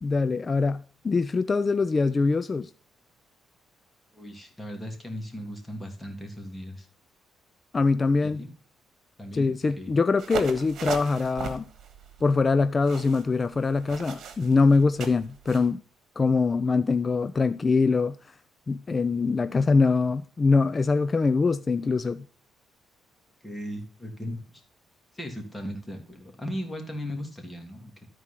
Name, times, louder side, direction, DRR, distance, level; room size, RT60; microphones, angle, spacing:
voice 1, 0.0-2.7 7.7-8.4 9.3-11.7 12.2-15.8 16.2-18.2 18.7-22.2, left 4 dB, 30° left, 0.4 m, -23 dB
voice 2, 4.1-6.9 8.2-8.5 9.2-9.9 23.4-24.6 25.1-28.1, equal, 15° left, 2.7 m, -37 dB
sound 1, 10.2-15.7, right 7 dB, 65° right, 1.5 m, -38 dB
12.5 x 4.7 x 5.8 m
cardioid pair, 90°, 0 cm